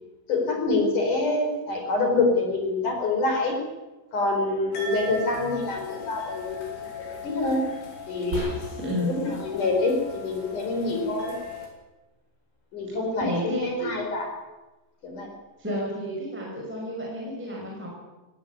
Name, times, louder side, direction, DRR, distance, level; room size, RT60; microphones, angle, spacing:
voice 1, 0.3-3.6 4.1-7.6 8.1-8.5 9.0-11.3 12.7-14.2 15.0-15.3, left 2 dB, 45° left, 3 dB, 5.7 m, -26 dB
sound 1, 4.7-11.7, left 5 dB, 70° left, 6.3 m, -39 dB
sound 2, 8.3-9.0, equal, 20° right, 6.0 m, -34 dB
voice 2, 8.8-9.2 13.2-13.7 15.6-17.9, equal, ahead, -3 dB, 5.2 m, -30 dB
18.5 x 17.5 x 9.7 m, 1.1 s
omnidirectional pair, 5.4 m